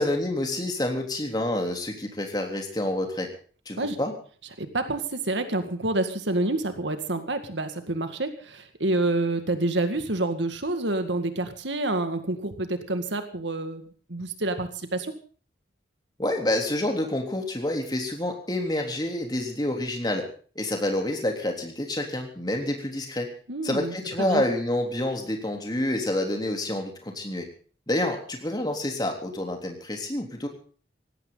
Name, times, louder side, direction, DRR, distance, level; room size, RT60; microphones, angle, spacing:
voice 1, 0.0-3.3 3.7-4.1 16.2-20.3 20.6-23.3 23.6-27.5 27.9-30.5, left 1 dB, 20° left, 3 dB, 3.5 m, -28 dB
voice 2, 4.6-15.1 23.5-24.4, right 2 dB, 85° right, 8 dB, 2.0 m, -28 dB
18.5 x 16.5 x 4.0 m, 0.42 s
head